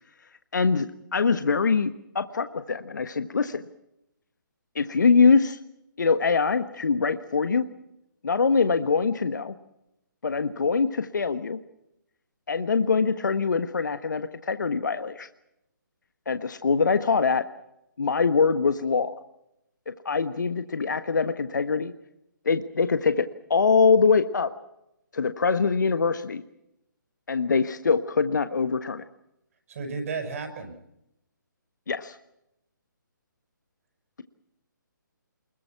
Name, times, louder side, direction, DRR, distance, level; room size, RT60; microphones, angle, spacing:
voice 1, 0.5-0.9 1.1-3.6 4.7-5.6 6.0-7.6 8.2-9.6 10.2-11.6 12.5-15.3 16.3-17.4 18.0-19.1 20.0-21.9 22.4-24.5 25.1-26.4 27.3-29.0 31.9-32.2, left 5 dB, 65° left, 10 dB, 1.4 m, -23 dB
voice 2, 29.7-30.7, right 4 dB, 45° right, 7 dB, 6.1 m, -33 dB
29.0 x 21.5 x 5.9 m, 0.83 s
figure-of-eight pair, 140°, 11 cm